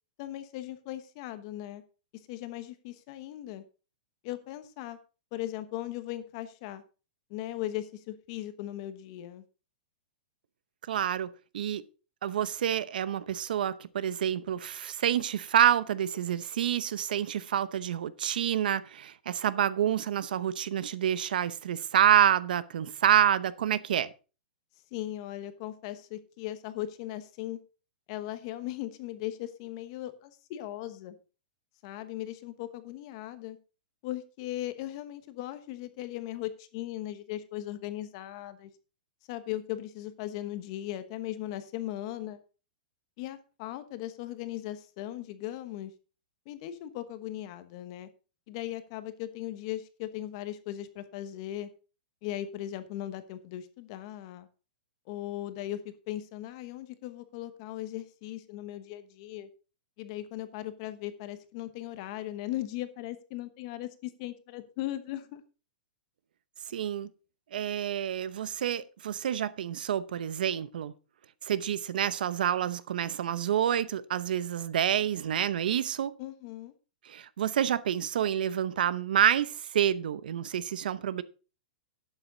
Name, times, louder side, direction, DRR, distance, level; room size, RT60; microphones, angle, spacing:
voice 1, 0.2-1.8 2.1-3.6 4.2-5.0 5.3-6.8 7.3-9.4 24.9-27.6 28.1-31.2 31.8-33.6 34.0-38.7 39.3-42.4 43.2-45.9 46.5-48.1 48.5-51.7 52.2-54.5 55.1-59.5 60.0-65.4 76.2-76.7, left 13 dB, 35° left, 1.1 m, -38 dB
voice 2, 10.9-11.8 12.2-24.1 66.7-67.1 67.5-70.9 71.4-76.1 77.1-81.2, right 10 dB, 65° right, 0.8 m, -28 dB
12.0 x 9.0 x 3.9 m
hypercardioid pair, 170°, 5 cm